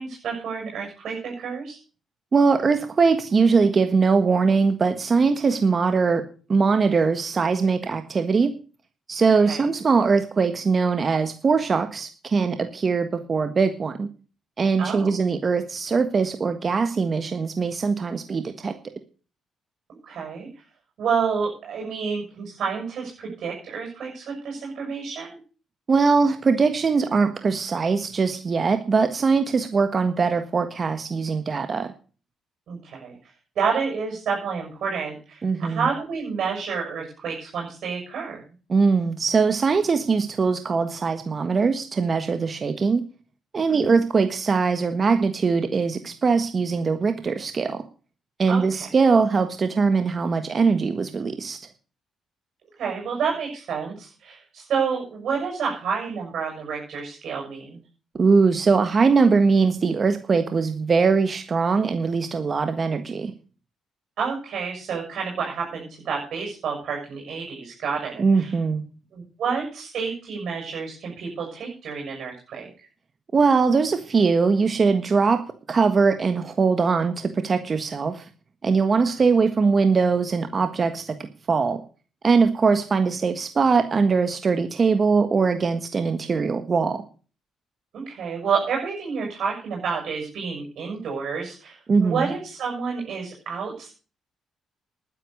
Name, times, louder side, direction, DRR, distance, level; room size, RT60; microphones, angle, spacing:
voice 1, 0.0-1.8 9.4-9.6 14.8-15.1 20.1-20.5 21.0-25.4 32.7-33.1 33.6-38.4 43.7-44.0 48.5-48.9 52.8-57.8 64.2-68.5 69.1-72.7 87.9-93.9, right 6 dB, 65° right, 0 dB, 7.1 m, -29 dB
voice 2, 2.3-6.2 6.5-8.5 9.1-14.1 14.6-18.7 25.9-31.9 35.4-35.9 38.7-43.0 43.5-47.8 48.4-51.6 58.1-63.3 68.2-68.8 73.3-75.4 75.7-78.3 78.6-81.8 82.2-87.0 91.9-92.3, right 4 dB, 40° right, 8 dB, 1.4 m, -21 dB
11.5 x 9.8 x 6.6 m, 0.37 s
cardioid pair, 90°, 0 cm